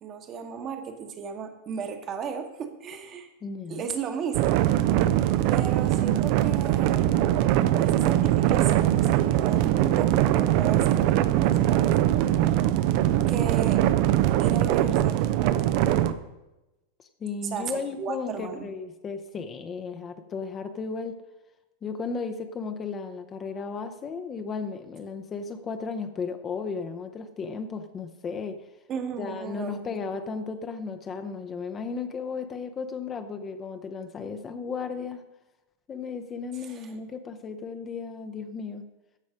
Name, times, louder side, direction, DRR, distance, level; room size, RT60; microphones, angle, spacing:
voice 1, 0.0-3.3 3.7-4.6 5.5-7.1 7.8-12.6 13.3-13.8 14.4-15.8 17.4-18.7 28.9-29.8 36.6-36.9, right 6 dB, 30° right, 6 dB, 1.1 m, -35 dB
voice 2, 3.4-4.0 17.2-21.2 21.8-28.7 29.2-35.2 35.9-38.8, left 5 dB, 25° left, 7 dB, 0.7 m, -35 dB
sound 1, 4.3-16.1, right 13 dB, 45° right, 0.5 m, -22 dB
15.0 x 5.3 x 5.1 m, 1.0 s
figure-of-eight pair, 90°, 0 cm